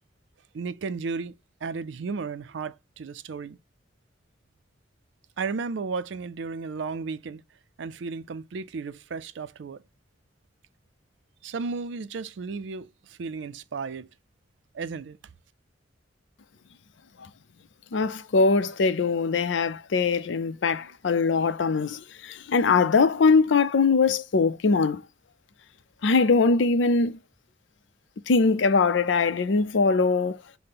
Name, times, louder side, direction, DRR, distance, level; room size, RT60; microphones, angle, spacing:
voice 1, 0.5-1.3 1.6-3.6 5.4-7.4 7.8-9.8 11.4-14.1 14.7-15.2, right 4 dB, 75° right, 0.4 m, -34 dB
voice 2, 17.9-25.0 26.0-27.2 28.3-30.4, left 4 dB, 75° left, 0.5 m, -22 dB
5.7 x 2.1 x 3.4 m
head